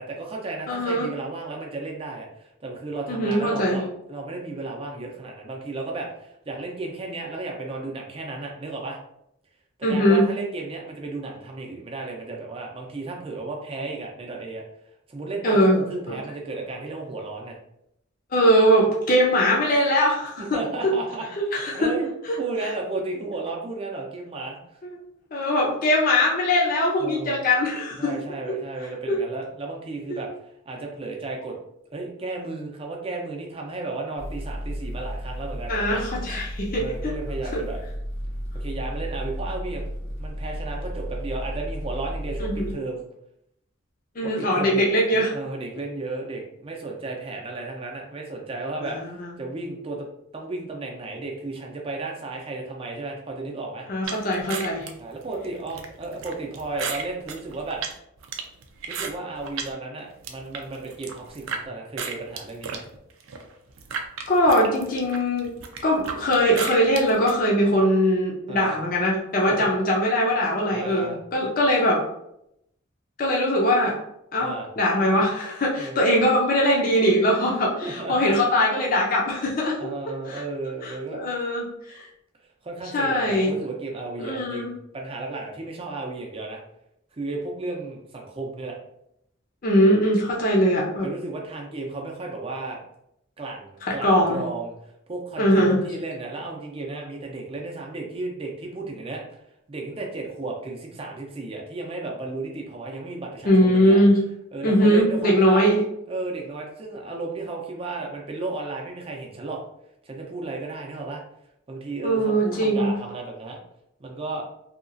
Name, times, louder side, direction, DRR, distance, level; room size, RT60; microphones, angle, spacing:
voice 1, 0.0-3.8 4.1-9.0 9.9-14.6 15.1-17.6 20.4-21.3 21.7-22.1 22.4-24.6 27.0-27.4 28.0-30.3 30.7-31.6 31.9-36.0 36.8-37.8 38.6-39.8 40.2-43.0 44.2-44.9 45.1-50.1 50.3-53.9 55.0-57.8 58.9-62.8 68.5-68.8 69.5-69.7 70.7-71.2 74.4-74.7 75.8-76.0 77.5-78.4 79.8-81.2 82.6-86.6 87.2-88.8 91.0-92.8 93.4-94.7 95.1-99.2 99.7-104.0 104.5-105.7 106.1-109.6 110.0-111.2 111.7-113.6 114.0-114.4, right 3 dB, 30° right, 0 dB, 0.5 m, -34 dB
voice 2, 0.7-1.1 3.1-3.8 9.8-10.3 15.4-15.8 16.1-16.2 18.3-20.4 20.8-20.9 21.4-21.9 25.3-28.1 28.5-28.6 29.1-29.2 30.1-30.2 35.7-37.2 37.5-37.6 42.4-42.8 44.2-45.3 48.8-49.3 53.9-54.9 64.3-65.5 65.8-72.0 73.2-74.0 74.3-79.9 80.3-80.4 80.8-82.1 82.9-83.5 84.2-84.7 89.6-91.1 93.9-94.4 95.4-95.8 103.4-104.2 104.6-105.8 112.0-113.0, equal, 45° left, -2 dB, 0.5 m, -21 dB
sound 1, 34.2-42.7, equal, 90° left, 0.8 m, -33 dB
sound 2, 54.1-59.7 60.1-61.6 62.0-67.4, right 6 dB, 85° right, 0.4 m, -35 dB
2.8 x 2.3 x 2.5 m, 0.78 s
head